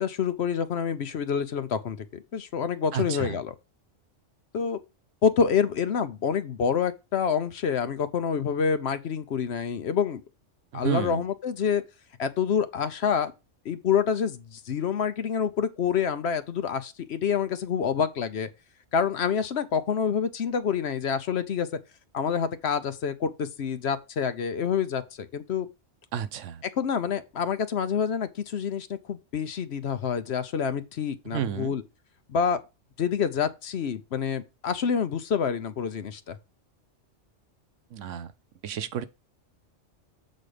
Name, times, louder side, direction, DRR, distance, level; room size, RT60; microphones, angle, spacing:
voice 1, 0.0-3.5 4.5-4.8 5.2-10.2 10.7-11.8 12.2-13.3 13.6-18.5 18.9-21.7 22.1-25.7 26.8-31.8 32.3-32.6 33.0-36.4, left 7 dB, 65° left, 1.0 m, -27 dB
voice 2, 2.9-3.4 10.7-11.2 26.1-26.6 31.2-31.8 37.9-38.3 38.6-39.0, right 9 dB, 90° right, 1.1 m, -31 dB
7.7 x 4.2 x 4.9 m
omnidirectional pair, 1.2 m